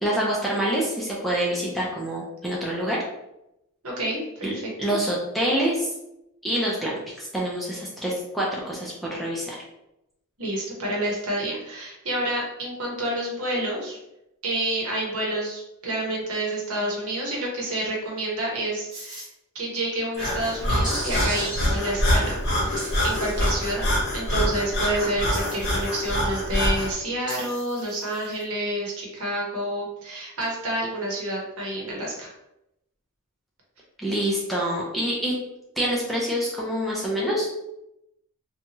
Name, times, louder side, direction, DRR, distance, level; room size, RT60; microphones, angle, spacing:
voice 1, 0.0-3.0 4.4-5.9 6.4-9.6 34.0-35.3 35.8-37.5, right 1 dB, ahead, -5 dB, 0.4 m, -26 dB
voice 2, 3.8-4.5 4.9-5.0 10.4-14.0 14.4-19.2 19.5-32.3, right 1 dB, 75° right, -2 dB, 0.9 m, -29 dB
sound 1, 18.9-19.2 20.8-21.8 22.7-23.6 25.3-26.1 27.3-28.4, right 1 dB, 20° right, 1.0 m, -36 dB
Breathing, 20.2-26.9, equal, 50° left, 0.9 m, -25 dB
2.8 x 2.3 x 2.8 m, 0.86 s
head